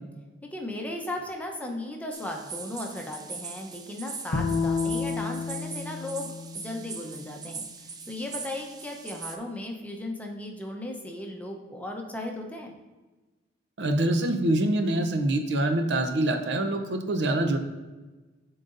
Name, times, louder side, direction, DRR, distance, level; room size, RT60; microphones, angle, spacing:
voice 1, 0.5-12.7, left 1 dB, 10° left, 1 dB, 0.7 m, -36 dB
sound 1, 2.1-9.4, right 5 dB, 20° right, 0.4 m, -41 dB
Bowed string instrument, 4.3-7.6, left 4 dB, 90° left, 0.6 m, -31 dB
voice 2, 13.8-17.6, right 1 dB, 70° right, 6 dB, 0.6 m, -25 dB
11.5 x 3.9 x 2.5 m, 1.2 s
head